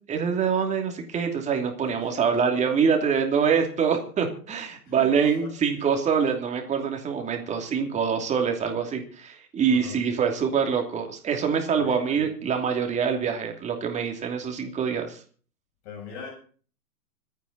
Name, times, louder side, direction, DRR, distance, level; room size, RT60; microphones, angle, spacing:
voice 1, 0.1-15.2, right 6 dB, 15° right, 4 dB, 2.9 m, -25 dB
voice 2, 1.8-2.4 4.9-5.5 9.6-10.0 11.7-12.3 15.8-16.3, left 5 dB, 40° left, -1 dB, 7.8 m, -42 dB
26.0 x 9.3 x 4.1 m, 0.43 s
hypercardioid pair, 145°, 47 cm